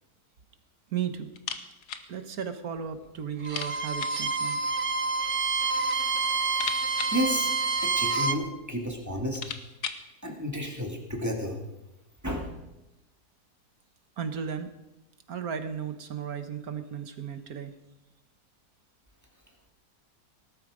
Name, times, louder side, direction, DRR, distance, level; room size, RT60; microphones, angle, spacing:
voice 1, 0.9-1.3 2.1-4.6 14.2-14.7 15.3-17.7, right 7 dB, 65° right, 9 dB, 1.6 m, -35 dB
sound 1, 1.3-2.1 2.4-2.5 2.8-2.9 3.4-4.3 5.2-5.8 6.1-8.1 8.8-8.9 9.2-10.1, left 7 dB, 75° left, 1.5 m, -39 dB
Bowed string instrument, 3.4-8.4, right 4 dB, 40° right, 0.4 m, -28 dB
voice 2, 7.1-7.5 7.8-9.4 10.2-11.6 12.2-12.5, equal, 10° right, 0 dB, 2.2 m, -31 dB
18.5 x 12.5 x 5.0 m, 0.97 s
omnidirectional pair, 1.7 m